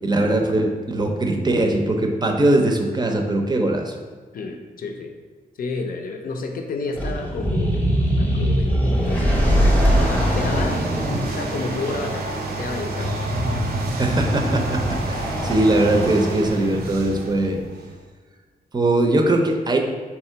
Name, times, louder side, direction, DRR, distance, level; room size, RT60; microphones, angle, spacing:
voice 1, 0.0-4.0 14.0-17.6 18.7-19.8, right 1 dB, 25° right, 3 dB, 0.5 m, -21 dB
voice 2, 4.3-5.1 5.6-7.9 8.2-10.8 11.3-13.2, left 3 dB, 65° left, 4 dB, 0.6 m, -31 dB
sound 1, 7.0-16.5, equal, 10° left, 0.8 m, -22 dB
sound 2, 8.9-18.0, right 3 dB, 80° right, 0.5 m, -30 dB
3.7 x 2.9 x 4.4 m, 1.4 s
cardioid pair, 100°, 16 cm